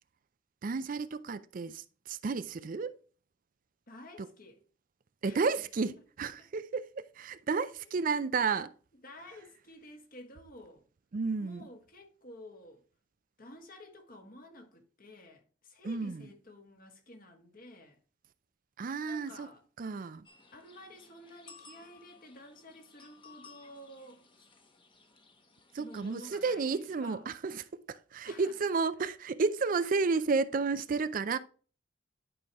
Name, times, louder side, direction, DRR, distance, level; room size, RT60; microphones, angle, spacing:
voice 1, 0.6-2.9 4.2-4.3 5.2-8.7 11.1-11.6 15.8-16.3 18.8-19.5 19.8-20.3 25.7-31.4, right 4 dB, 45° right, 0.4 m, -32 dB
voice 2, 3.9-4.6 5.2-5.5 7.8-7.9 9.0-10.8 11.4-12.8 13.4-18.0 19.0-19.6 20.5-24.5 25.8-27.2 28.2-28.7, left 1 dB, 45° left, 1.7 m, -52 dB
sound 1, 20.2-27.0, left 4 dB, 25° left, 1.0 m, -58 dB
11.0 x 5.0 x 3.0 m
head